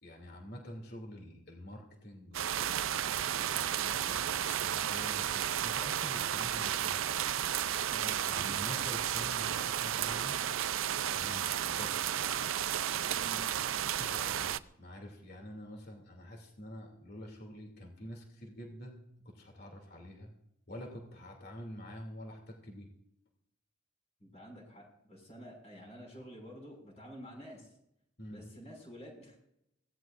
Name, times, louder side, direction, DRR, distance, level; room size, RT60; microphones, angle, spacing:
voice 1, 0.0-2.6 3.5-7.2 8.3-10.4 11.0-12.2 14.0-20.3 20.7-22.9 28.2-28.4, equal, 50° left, 1 dB, 2.8 m, -47 dB
sound 1, 2.3-14.6, right 10 dB, 75° right, 0.5 m, -33 dB
voice 2, 24.2-27.7 28.3-29.4, equal, 30° left, 1 dB, 5.9 m, -49 dB
24.0 x 17.5 x 2.6 m, 0.79 s
head